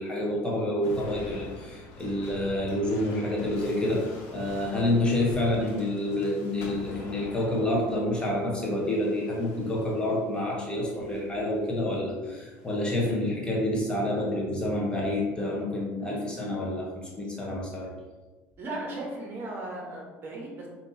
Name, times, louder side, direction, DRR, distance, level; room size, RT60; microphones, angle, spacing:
voice 1, 0.0-17.9, left 1 dB, 15° left, -3 dB, 1.0 m, -28 dB
sound 1, 0.8-10.2 10.9-11.4 12.5-13.2, left 2 dB, 65° left, 1.1 m, -45 dB
voice 2, 18.6-20.7, right 2 dB, 40° right, -2 dB, 1.2 m, -36 dB
5.1 x 2.8 x 2.8 m, 1.3 s
supercardioid pair, 105°, 6 cm